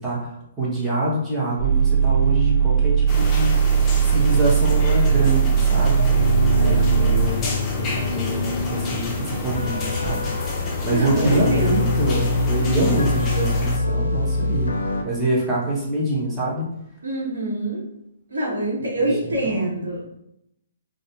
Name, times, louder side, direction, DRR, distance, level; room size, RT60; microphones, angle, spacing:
voice 1, 0.0-3.5 4.0-6.1 6.6-7.5 7.7-10.3 10.8-14.7 15.0-16.7 19.0-19.7, right 2 dB, 15° right, -6 dB, 0.8 m, -25 dB
sound 1, 1.6-7.2, right 7 dB, 55° right, 0.8 m, -18 dB
sound 2, 3.1-13.8, left 1 dB, 20° left, 0.5 m, -30 dB
sound 3, 5.8-15.0, left 3 dB, 80° left, 0.4 m, -25 dB
voice 2, 10.9-11.9 17.0-17.8 18.3-20.2, right 1 dB, 80° right, -5 dB, 1.2 m, -26 dB
2.5 x 2.4 x 2.3 m, 0.79 s
hypercardioid pair, 135°, 0 cm